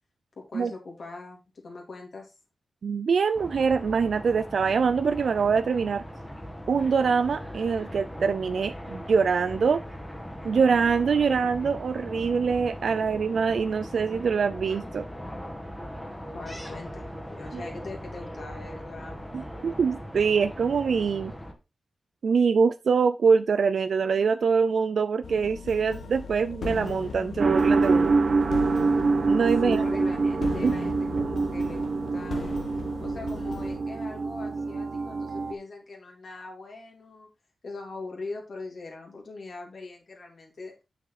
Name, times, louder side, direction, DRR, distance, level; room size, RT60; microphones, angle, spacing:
voice 1, 0.4-2.3 16.3-19.3 29.6-32.5 33.0-37.3 37.6-40.7, left 3 dB, 60° left, 0 dB, 3.2 m, -41 dB
voice 2, 2.8-6.0 6.7-9.8 10.4-15.1 17.5-17.6 19.3-21.3 22.2-28.1 29.3-29.8 30.6-30.7, right 5 dB, 75° right, 12 dB, 0.4 m, -24 dB
sound 1, 3.3-21.5, equal, 5° left, 1.8 m, -39 dB
sound 2, 25.2-33.8, left 4 dB, 85° left, 1.9 m, -38 dB
sound 3, 27.4-35.5, right 4 dB, 55° right, 1.0 m, -25 dB
7.4 x 6.9 x 4.0 m, 0.27 s
wide cardioid pair, 145°, 0 cm